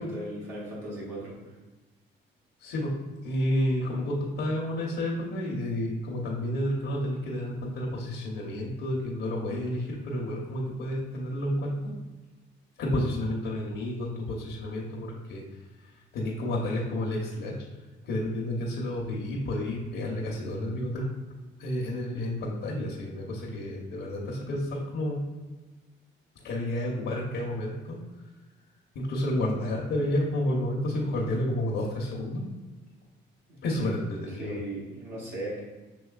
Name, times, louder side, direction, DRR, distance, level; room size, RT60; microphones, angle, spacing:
voice 1, 0.0-1.4 33.5-33.9 34.4-35.6, right 1 dB, 85° right, -6 dB, 1.3 m, -37 dB
voice 2, 2.6-2.9 3.2-11.9 12.8-15.4 16.1-17.5 18.0-21.0 21.6-25.3 26.4-28.0 28.9-32.4 33.6-34.6, left 1 dB, 85° left, -2 dB, 0.9 m, -30 dB
6.2 x 3.1 x 2.4 m, 1.2 s
cardioid pair, 90°, 20 cm